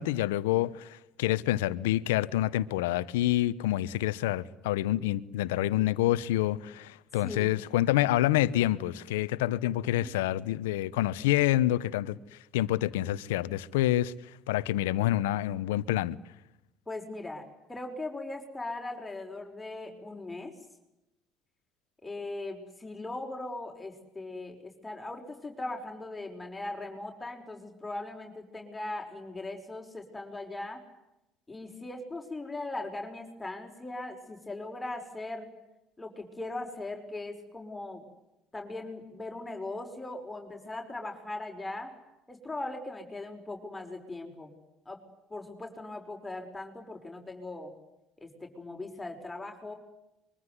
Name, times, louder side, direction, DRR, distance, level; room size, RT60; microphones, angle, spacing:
voice 1, 0.0-16.2, left 14 dB, 85° left, 1.0 m, -27 dB
voice 2, 16.9-20.5 22.0-30.8 31.5-35.5 36.0-38.1 38.5-41.9 42.3-44.5 44.9-45.0 45.3-47.8 48.2-49.7, left 2 dB, 15° left, 5.7 m, -39 dB
25.0 x 23.5 x 9.6 m
hypercardioid pair, 70°, 0 cm